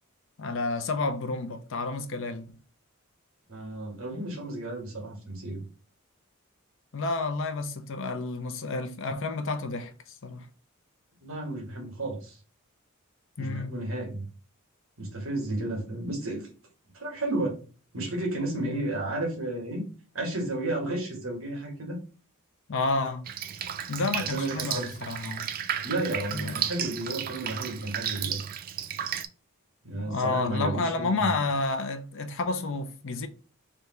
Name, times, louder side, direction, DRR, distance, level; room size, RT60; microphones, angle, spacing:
voice 1, 0.4-2.6 6.9-10.5 13.4-13.8 18.6-18.7 22.7-23.3 23.9-25.5 26.3-26.6 30.0-33.3, left 3 dB, 60° left, 0.6 m, -30 dB
voice 2, 3.5-5.6 11.2-12.4 13.4-14.2 15.0-16.5 16.9-17.6 17.9-19.8 20.1-22.0 24.3-24.9 25.8-28.4 29.8-31.3, right 2 dB, 65° right, 1.5 m, -32 dB
Drip, 23.3-29.3, right 9 dB, 40° right, 0.3 m, -33 dB
3.4 x 2.7 x 4.3 m
head